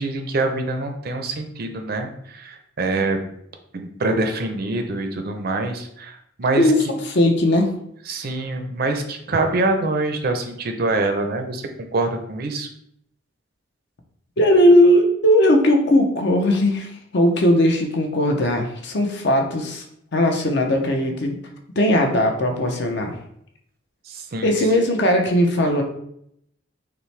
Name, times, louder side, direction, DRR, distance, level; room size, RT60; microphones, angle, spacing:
voice 1, 0.0-3.2 3.7-6.7 8.1-11.6 11.9-12.7 24.1-24.6, right 2 dB, 50° right, 5 dB, 0.5 m, -25 dB
voice 2, 6.6-7.7 14.4-19.8 20.1-21.4 21.8-23.2 24.4-25.8, left 1 dB, 55° left, 3 dB, 0.6 m, -18 dB
5.6 x 2.1 x 3.2 m, 0.74 s
head